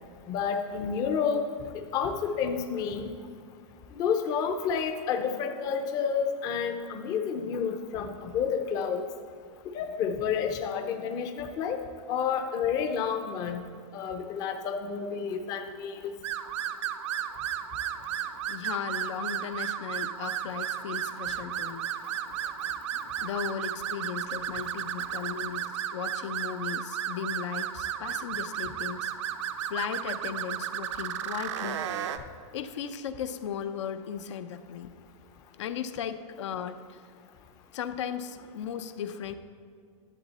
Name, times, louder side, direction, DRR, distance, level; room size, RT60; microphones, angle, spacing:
voice 1, 0.3-3.1 3.9-9.0 9.7-11.8 12.1-13.6 13.9-16.1, left 6 dB, 20° left, 5 dB, 0.6 m, -30 dB
sound 1, 16.2-32.2, right 10 dB, 65° right, 0.7 m, -34 dB
voice 2, 17.8-29.1 29.7-31.8 32.5-34.9 35.6-37.0 37.7-39.3, left 8 dB, 70° left, 9 dB, 0.6 m, -37 dB
11.0 x 8.3 x 4.1 m, 2.2 s
supercardioid pair, 170°, 16 cm